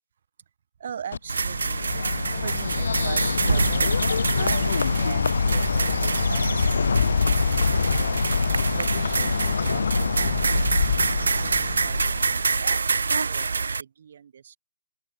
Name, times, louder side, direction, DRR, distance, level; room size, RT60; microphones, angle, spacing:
voice 1, 0.8-3.9 4.3-8.3 8.8-9.9 10.2-14.6, right 8 dB, 40° right, 2.8 m, -40 dB
Bird, 1.1-12.5, left 5 dB, 60° left, 0.4 m, -25 dB
sound 1, 1.3-13.8, right 4 dB, 90° right, 0.6 m, -26 dB
open air
hypercardioid pair, 175°, 0 cm